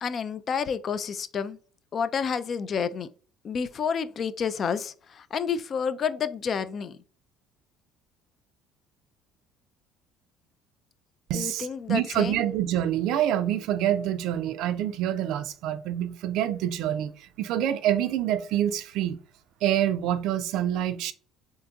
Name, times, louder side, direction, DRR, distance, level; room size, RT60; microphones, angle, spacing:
voice 1, 0.0-1.6 1.9-3.1 3.4-7.0 11.3-12.4, left 6 dB, 45° left, 0.3 m, -29 dB
voice 2, 11.3-19.2 19.6-21.1, right 11 dB, 70° right, 0.3 m, -26 dB
3.8 x 2.7 x 2.3 m
hypercardioid pair, 70°, 0 cm